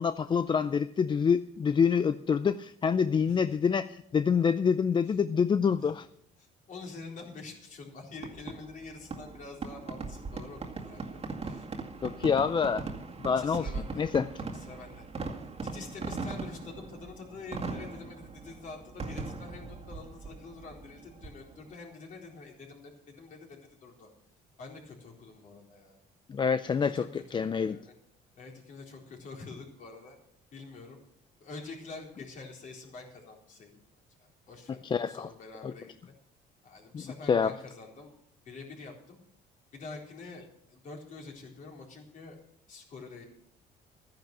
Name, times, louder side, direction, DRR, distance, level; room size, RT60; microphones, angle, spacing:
voice 1, 0.0-6.1 12.0-12.8 13.2-14.3 26.3-27.8 34.8-35.3 35.6-35.7 36.9-37.5, left 6 dB, 30° left, 12 dB, 0.4 m, -27 dB
voice 2, 6.4-11.7 13.3-14.0 14.4-15.0 15.7-24.1 24.6-25.9 26.7-27.9 28.4-30.2 30.5-31.0 31.4-33.8 34.2-35.9 36.6-38.1 38.5-39.2 39.7-42.4 42.7-43.2, left 3 dB, 50° left, 0 dB, 4.1 m, -46 dB
Fireworks, 8.2-21.7, right 4 dB, 35° right, 2.1 m, -40 dB
13.5 x 10.5 x 5.9 m, 0.69 s
cardioid pair, 110°, 17 cm